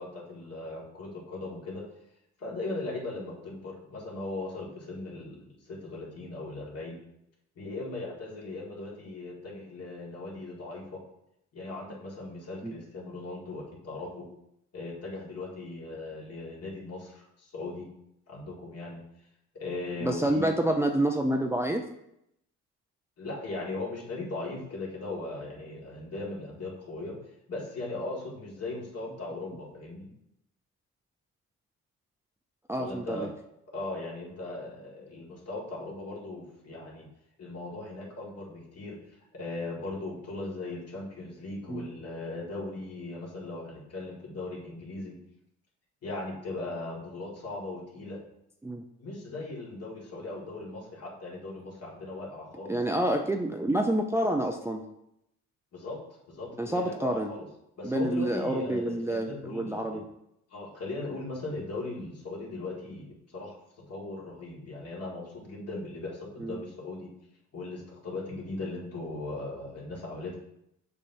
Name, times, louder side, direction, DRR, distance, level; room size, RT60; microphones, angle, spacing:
voice 1, 0.0-1.8 2.4-7.0 7.6-11.0 11.5-14.3 14.7-17.9 18.3-19.0 19.5-20.5 23.2-27.2 27.5-30.1 32.8-33.3 33.7-37.1 37.4-39.0 39.3-45.1 46.0-48.2 49.0-52.8 55.7-56.0 56.3-57.5 57.8-59.8 60.5-63.6 63.9-67.1 67.5-70.4, left 2 dB, 55° left, -2 dB, 1.9 m, -38 dB
voice 2, 20.0-21.8 32.7-33.3 41.7-41.9 48.6-48.8 52.7-54.8 56.6-57.3 57.8-60.0 66.4-66.6, right 1 dB, 10° right, 2 dB, 0.4 m, -28 dB
6.8 x 5.5 x 2.7 m, 0.79 s
cardioid pair, 90°, 30 cm